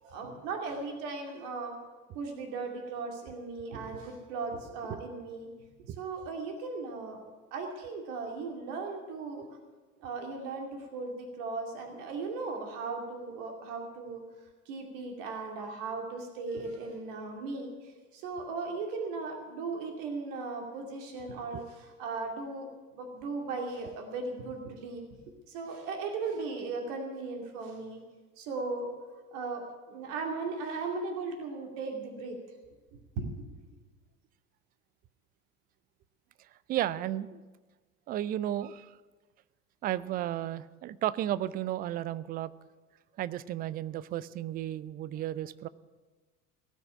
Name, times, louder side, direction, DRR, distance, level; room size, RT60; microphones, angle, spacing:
voice 1, 0.0-1.7 2.1-5.5 5.8-7.2 7.5-9.5 10.0-14.2 14.7-22.7 22.9-25.0 25.5-28.0 28.4-28.9 29.3-32.4 33.2-33.4, right 3 dB, 55° right, 2 dB, 2.5 m, -37 dB
voice 2, 36.4-37.4 38.1-39.0 39.8-42.5 43.2-45.7, right 12 dB, 20° right, 18 dB, 0.4 m, -33 dB
18.0 x 6.3 x 9.9 m, 1.3 s
figure-of-eight pair, 75°, 43 cm